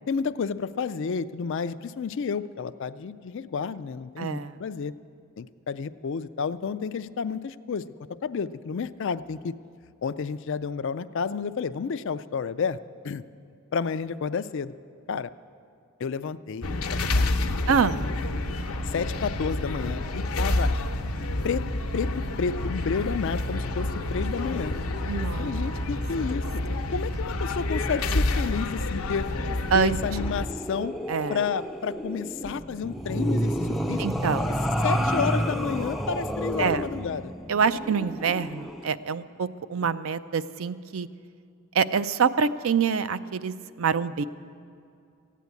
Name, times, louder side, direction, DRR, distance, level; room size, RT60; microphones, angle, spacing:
voice 1, 0.1-4.9 5.4-7.8 8.2-9.5 10.0-12.8 13.0-13.2 13.7-14.7 15.1-15.3 16.0-17.7 18.0-18.1 18.8-20.7 21.4-21.6 21.9-22.1 22.4-24.7 25.4-26.6 26.9-29.3 29.7-30.9 31.3-34.0 34.8-37.3, left 6 dB, 60° left, 13 dB, 0.4 m, -31 dB
voice 2, 4.2-4.6 17.7-18.0 25.1-25.9 29.7-30.0 31.1-31.4 34.0-34.6 36.6-36.8 37.5-41.1 41.7-44.2, right 6 dB, 65° right, 13 dB, 0.5 m, -26 dB
sound 1, 16.6-30.5, left 2 dB, 80° left, 0.9 m, -28 dB
sound 2, 29.9-38.9, equal, ahead, 0.4 m, -30 dB
15.0 x 9.2 x 8.3 m, 2.4 s
head